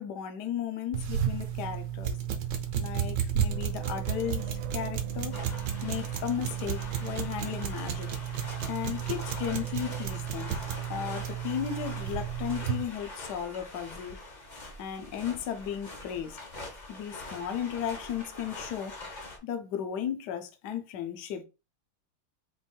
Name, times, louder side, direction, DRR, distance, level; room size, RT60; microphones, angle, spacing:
voice 1, 0.0-2.2 2.8-5.4 5.8-8.1 8.6-10.5 10.9-14.2 14.8-16.4 16.9-19.0 19.4-21.4, left 9 dB, 70° left, 1.1 m, -35 dB
sound 1, 0.9-12.8, right 9 dB, 65° right, 1.3 m, -33 dB
sound 2, 3.5-8.4 8.9-10.0, right 7 dB, 90° right, 1.5 m, -45 dB
sound 3, 5.3-19.4, left 2 dB, 40° left, 0.6 m, -44 dB
4.5 x 2.5 x 4.3 m
omnidirectional pair, 2.3 m